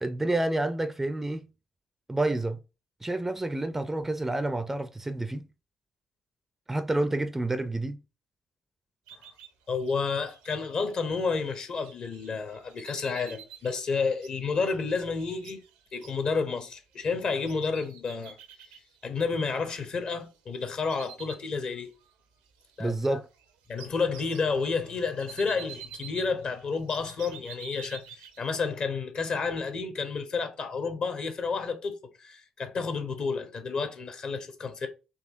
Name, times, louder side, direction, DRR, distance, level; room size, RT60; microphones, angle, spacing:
voice 1, 0.0-1.5 2.1-2.6 3.0-5.5 6.7-8.0 22.8-23.3, right 2 dB, 15° right, 0.4 m, -29 dB
sound 1, 9.1-20.4 20.7-22.1 22.4-28.7, right 9 dB, 70° right, 0.5 m, -50 dB
voice 2, 9.7-15.6 15.9-18.4 19.0-21.9 22.8-23.2 23.7-34.9, left 4 dB, 45° left, 0.8 m, -30 dB
4.0 x 2.7 x 2.5 m
figure-of-eight pair, 45°, 2 cm